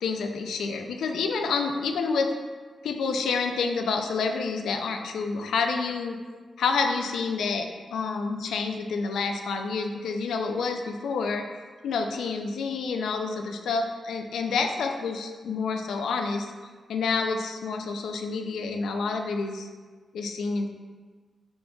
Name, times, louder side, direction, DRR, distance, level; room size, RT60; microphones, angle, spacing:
voice 1, 0.0-2.3 2.8-6.2 6.6-11.4 11.8-16.5 16.9-19.7 20.1-20.7, left 4 dB, 90° left, 5 dB, 0.3 m, -28 dB
5.0 x 3.8 x 2.3 m, 1.5 s
cardioid pair, 70°, 0 cm